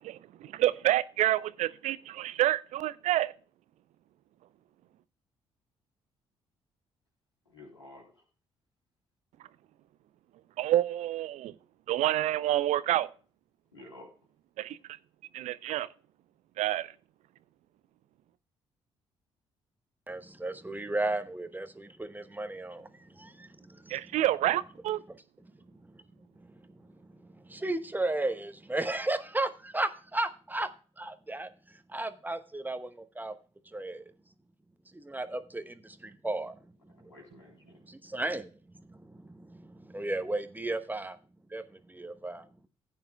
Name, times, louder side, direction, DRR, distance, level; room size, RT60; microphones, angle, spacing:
voice 1, 0.0-3.3 10.6-11.5 11.9-13.1 14.6-14.8 15.3-15.9 16.6-16.9 23.9-25.0, right 13 dB, 55° right, 0.5 m, -28 dB
voice 2, 7.4-8.2 13.7-14.1 36.9-37.8, left 2 dB, 90° left, 3.3 m, -51 dB
voice 3, 20.1-24.0 26.4-26.5 27.2-30.7 31.0-31.5 31.9-33.3 33.7-34.0 34.9-36.6 37.0-37.1 37.9-38.5 38.9-41.2 41.5-42.5, right 2 dB, 15° right, 1.1 m, -34 dB
16.0 x 9.1 x 2.2 m
figure-of-eight pair, 45°, 14 cm